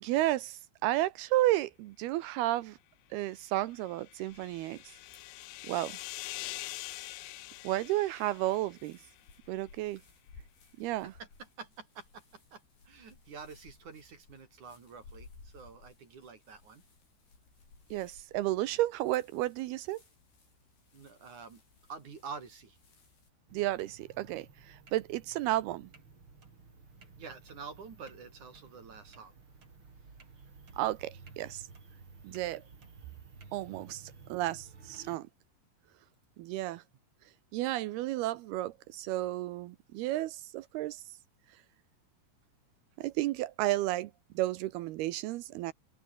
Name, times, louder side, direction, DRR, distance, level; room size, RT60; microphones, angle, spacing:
voice 1, 0.0-2.8 3.1-4.8 5.7-6.0 7.6-9.0 9.5-10.0 10.8-11.1 17.9-20.0 23.5-25.9 30.8-31.6 32.2-32.6 33.5-35.3 36.4-36.8 37.5-41.0 43.0-44.1 44.4-45.7, right 16 dB, 80° right, 2.4 m, -32 dB
sound 1, 3.6-9.2, left 18 dB, 75° left, 2.9 m, -44 dB
sound 2, 4.3-23.3, left 4 dB, 55° left, 10.0 m, -60 dB
voice 2, 11.2-16.8 20.9-21.6 21.9-22.8 27.2-29.3, right 5 dB, 45° right, 4.4 m, -48 dB
sound 3, 23.5-35.2, right 4 dB, 30° right, 4.7 m, -55 dB
open air
omnidirectional pair, 5.3 m